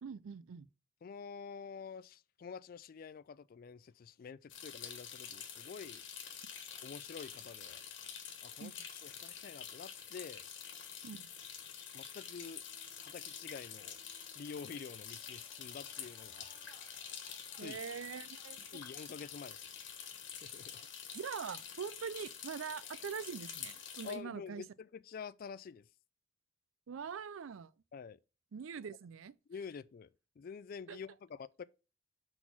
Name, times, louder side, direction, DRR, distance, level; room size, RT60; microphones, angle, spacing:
voice 1, 0.0-0.7 8.6-8.7 11.0-11.3 17.6-18.6 21.1-24.6 26.9-27.7 28.5-29.3 30.9-31.0, right 6 dB, 80° right, 0.4 m, -43 dB
voice 2, 1.0-6.0 6.8-7.8 8.4-10.4 11.9-12.6 13.0-14.0 14.4-16.6 17.6-17.8 18.7-19.7 20.4-20.8 24.0-25.9 27.9-28.2 29.5-30.1 30.4-31.6, left 6 dB, 45° left, 0.3 m, -48 dB
sound 1, 4.5-24.2, left 8 dB, 60° left, 1.4 m, -48 dB
sound 2, 12.6-23.1, left 1 dB, 15° left, 2.4 m, -70 dB
6.0 x 3.9 x 5.9 m
head